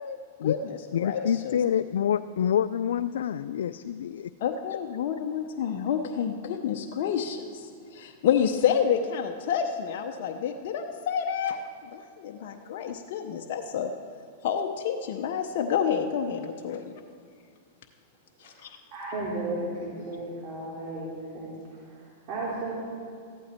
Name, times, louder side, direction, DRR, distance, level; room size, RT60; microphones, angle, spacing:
voice 1, 0.0-1.6 4.4-13.9 14.4-16.8 18.4-18.7, left 8 dB, 60° left, 3 dB, 0.8 m, -29 dB
voice 2, 0.9-4.3, left 9 dB, 80° left, 12 dB, 0.3 m, -27 dB
voice 3, 18.9-22.7, right 2 dB, 40° right, -6 dB, 3.2 m, -35 dB
14.5 x 11.5 x 4.4 m, 2.2 s
hypercardioid pair, 130°, 0 cm